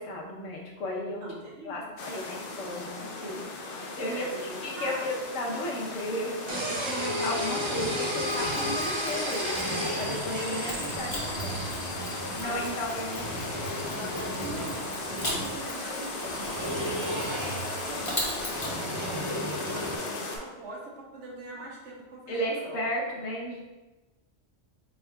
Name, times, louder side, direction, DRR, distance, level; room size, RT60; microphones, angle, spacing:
voice 1, 0.0-1.3 1.6-3.4 4.0-11.7 12.4-13.2 15.9-16.4 20.0-20.1 22.3-23.6, left 1 dB, 80° left, -2 dB, 1.2 m, -34 dB
voice 2, 1.2-2.0 4.1-5.0 12.3-12.8 13.3-18.1 18.7-22.8, right 2 dB, 70° right, -2 dB, 1.1 m, -43 dB
sound 1, 2.0-20.4, left 2 dB, 60° left, 0.6 m, -37 dB
sound 2, 6.5-20.0, equal, 35° right, 0.5 m, -34 dB
Mechanisms, 8.2-10.2 10.7-18.8, left 1 dB, 30° left, 0.9 m, -40 dB
4.5 x 3.5 x 2.2 m, 1.1 s
omnidirectional pair, 1.3 m